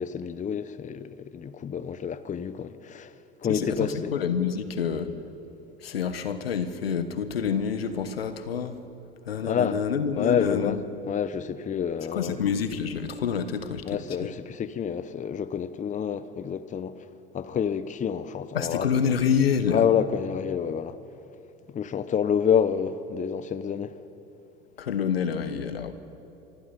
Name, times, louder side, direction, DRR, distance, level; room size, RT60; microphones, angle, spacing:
voice 1, 0.0-3.1 3.4-4.1 9.4-9.8 10.2-10.8 11.1-12.4 13.9-16.9 17.3-18.9 19.7-20.9 21.7-24.0, left 8 dB, 25° left, 0.9 m, -28 dB
voice 2, 3.5-5.1 5.8-8.8 9.2-10.9 12.1-14.3 18.5-19.8 24.8-25.9, left 7 dB, 85° left, 1.4 m, -27 dB
25.0 x 24.0 x 5.3 m
hypercardioid pair, 80°, 29 cm